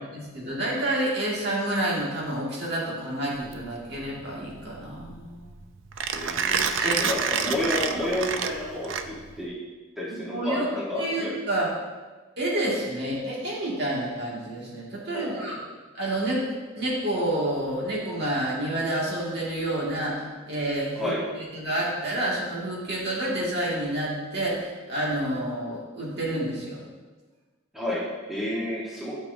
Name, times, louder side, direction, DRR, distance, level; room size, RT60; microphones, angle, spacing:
voice 1, 0.1-5.5 6.8-7.0 10.2-10.6 10.9-11.7 12.4-15.6 15.9-16.5 16.8-21.1 21.5-26.8, right 1 dB, 55° right, -5 dB, 2.1 m, -29 dB
Mechanisms, 3.4-9.5, right 6 dB, 70° right, 0.5 m, -29 dB
voice 2, 6.1-9.6 10.0-11.3 15.1-15.5 20.9-21.3 27.7-29.2, left 1 dB, ahead, -7 dB, 1.3 m, -30 dB
11.5 x 6.6 x 2.7 m, 1.3 s
head